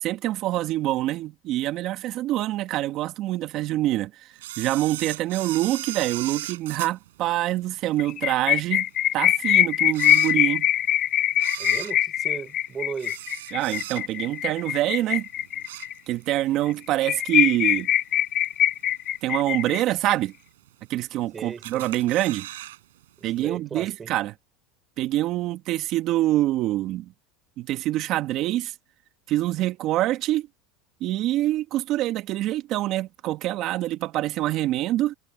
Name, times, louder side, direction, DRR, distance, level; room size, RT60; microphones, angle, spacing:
voice 1, 0.0-4.3 4.6-8.9 9.1-10.7 13.5-15.3 16.1-17.9 19.2-20.3 20.9-22.5 23.2-24.3 25.0-27.1 27.6-28.7 29.3-30.5 31.0-35.1, right 15 dB, 50° right, 2.2 m, -25 dB
Camera, 4.4-8.0 8.5-8.6 9.3-9.4 9.8-10.9 11.3-14.3 14.7-15.0 15.3-16.4 16.7-16.8 17.8-17.9 18.4-18.8 19.3-19.4 19.6-19.7 19.8-19.9 20.7-21.2 21.6-22.8 23.0-23.1 23.4-23.5, right 15 dB, 85° right, 7.5 m, -37 dB
sound 1, 8.0-15.9 16.3-16.4 16.7-16.8 17.0-20.1, left 12 dB, 45° left, 0.6 m, -23 dB
voice 2, 11.6-13.2 21.3-21.9 23.2-24.1, right 6 dB, 25° right, 5.5 m, -36 dB
supercardioid pair, 115°, 0 cm